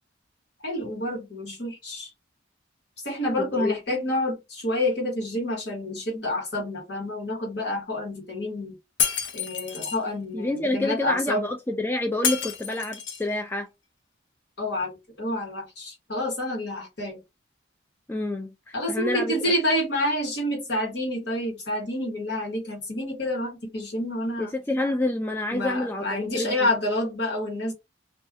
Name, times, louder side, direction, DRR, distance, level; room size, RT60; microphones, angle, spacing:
voice 1, 0.6-2.1 3.0-8.8 9.3-11.5 14.6-14.9 15.2-17.2 18.7-24.5 25.5-27.7, left 1 dB, 60° left, 1.4 m, -28 dB
voice 2, 3.4-3.8 10.3-13.7 18.1-19.4 24.4-26.7, left 2 dB, 10° left, 0.3 m, -28 dB
Shatter, 9.0-10.0 12.2-13.3, left 6 dB, 80° left, 0.7 m, -28 dB
2.5 x 2.3 x 3.5 m
head